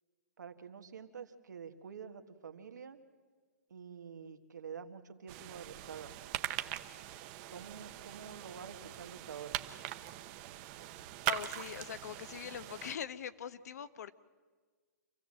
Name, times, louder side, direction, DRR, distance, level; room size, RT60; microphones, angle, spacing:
voice 1, 0.4-3.0 3.7-6.1 7.5-9.6, right 7 dB, 85° right, 7 dB, 1.7 m, -48 dB
sound 1, 5.3-13.0, right 14 dB, 30° right, 0.9 m, -41 dB
voice 2, 11.3-14.1, left 9 dB, 65° left, 14 dB, 0.9 m, -42 dB
27.0 x 15.0 x 7.6 m, 1.5 s
hypercardioid pair, 150°, 9 cm